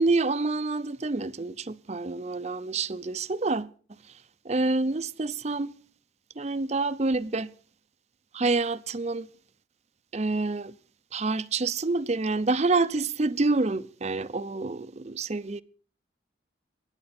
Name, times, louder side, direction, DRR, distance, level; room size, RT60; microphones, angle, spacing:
voice 1, 0.0-3.7 4.4-5.7 6.4-7.5 8.3-9.3 10.1-10.7 11.1-15.6, right 3 dB, 35° right, 0.6 m, -27 dB
23.0 x 9.7 x 4.2 m
head